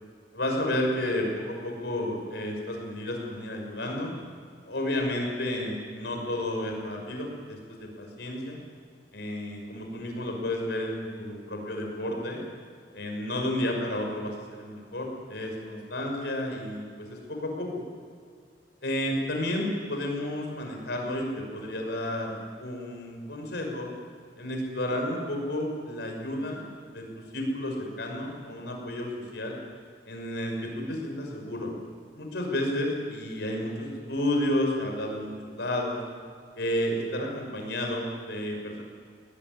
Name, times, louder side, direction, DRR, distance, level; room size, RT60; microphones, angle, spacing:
voice 1, 0.3-4.1 4.7-8.6 9.1-12.4 12.9-17.8 18.8-23.9 24.4-27.0 27.3-29.6 30.1-31.7 32.1-36.0 36.6-38.8, left 1 dB, 70° left, 1 dB, 6.2 m, -31 dB
20.0 x 19.0 x 9.8 m, 2.2 s
head